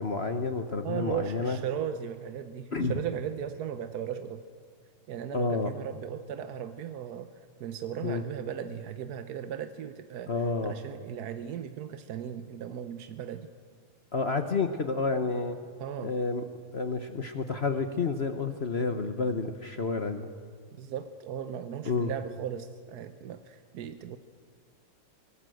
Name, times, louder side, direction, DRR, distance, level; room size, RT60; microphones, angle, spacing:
voice 1, 0.0-1.6 2.7-2.9 5.3-5.7 8.0-8.2 10.3-10.8 14.1-15.6 16.0-16.4 16.7-20.3 21.9-22.1, left 4 dB, 45° left, 7 dB, 0.8 m, -30 dB
voice 2, 0.8-4.4 5.1-7.3 7.6-10.3 10.6-13.5 15.8-16.2 20.8-24.2, right 9 dB, 65° right, 10 dB, 1.0 m, -37 dB
25.0 x 18.5 x 7.8 m, 2.1 s
omnidirectional pair, 2.4 m